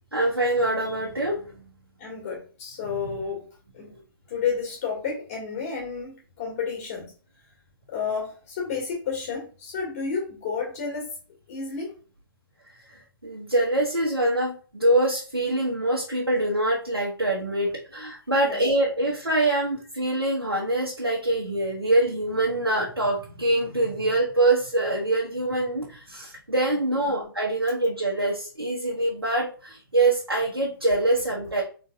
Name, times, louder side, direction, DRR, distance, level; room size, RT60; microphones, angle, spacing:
voice 1, 0.1-1.6 2.8-3.2 3.8-3.9 12.9-31.6, right 1 dB, 90° right, -4 dB, 1.1 m, -24 dB
voice 2, 2.0-3.5 3.7-4.0 4.3-7.1 7.9-11.1 11.5-12.0 18.4-18.6 27.1-27.2, left 5 dB, 40° left, -4 dB, 2.0 m, -31 dB
4.0 x 3.8 x 2.4 m, 0.39 s
figure-of-eight pair, 125°, 12 cm